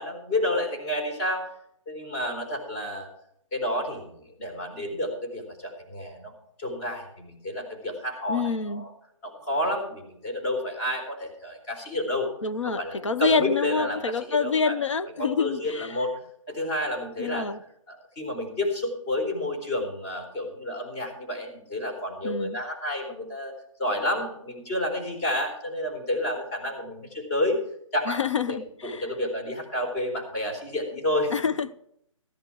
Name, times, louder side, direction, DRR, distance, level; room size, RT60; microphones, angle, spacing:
voice 1, 0.0-1.4 1.9-3.1 3.5-6.3 6.6-8.9 9.2-12.3 12.6-14.8 15.2-16.1 16.5-17.5 17.9-23.5 23.8-27.6 27.9-28.2 28.5-28.6 28.8-31.3, left 1 dB, 30° left, 2 dB, 4.1 m, -30 dB
voice 2, 8.3-8.9 12.4-15.9 17.2-17.6 22.2-22.6 28.1-29.1 31.3-31.7, left 5 dB, 65° left, 11 dB, 0.9 m, -27 dB
14.0 x 11.5 x 4.8 m, 0.70 s
figure-of-eight pair, 145°, 17 cm